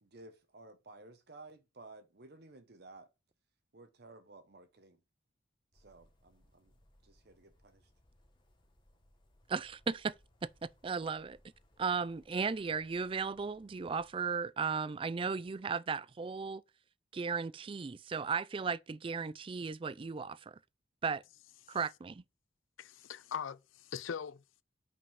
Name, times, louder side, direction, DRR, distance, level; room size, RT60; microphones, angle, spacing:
voice 1, 0.0-3.1 3.7-5.0 5.7-6.7 7.0-7.9, right 2 dB, 55° right, 1.0 m, -55 dB
sound 1, 5.7-14.1, left 1 dB, 25° left, 1.2 m, -68 dB
voice 2, 9.5-10.1 10.4-11.4 11.8-16.6 17.1-20.6 21.0-21.2 21.7-22.2, right 5 dB, 25° right, 0.3 m, -36 dB
voice 3, 22.8-24.6, left 7 dB, 80° left, 0.5 m, -41 dB
5.4 x 5.3 x 5.5 m
head